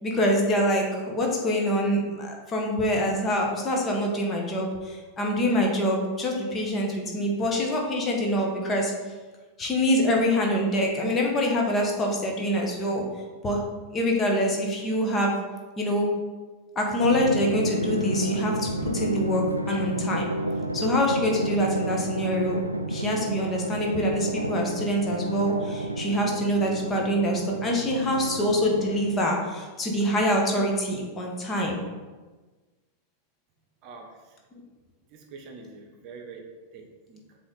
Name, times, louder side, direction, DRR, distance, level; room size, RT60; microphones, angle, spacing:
voice 1, 0.0-8.9 9.6-13.0 13.4-13.6 13.9-15.3 15.8-16.1 16.7-20.2 20.7-22.6 22.9-31.8, equal, 20° left, -1 dB, 1.4 m, -25 dB
Drum, 17.0-29.4, right 1 dB, 85° right, 0.3 m, -31 dB
voice 2, 33.8-34.4 35.1-37.4, right 4 dB, 40° right, 2 dB, 1.0 m, -45 dB
7.6 x 3.5 x 4.0 m, 1.3 s
figure-of-eight pair, 90°, 0 cm